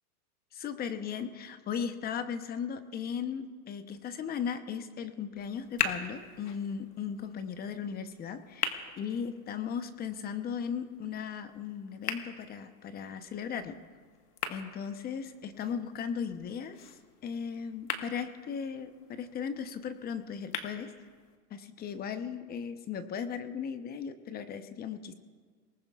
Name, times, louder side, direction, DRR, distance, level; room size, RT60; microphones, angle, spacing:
voice 1, 0.5-13.8 14.5-16.9 17.2-20.9 21.5-25.1, left 7 dB, 20° left, 9 dB, 0.9 m, -37 dB
sound 1, 5.4-21.4, left 7 dB, 90° left, 1.6 m, -42 dB
29.5 x 19.0 x 2.4 m, 1.5 s
hypercardioid pair, 125°, 45 cm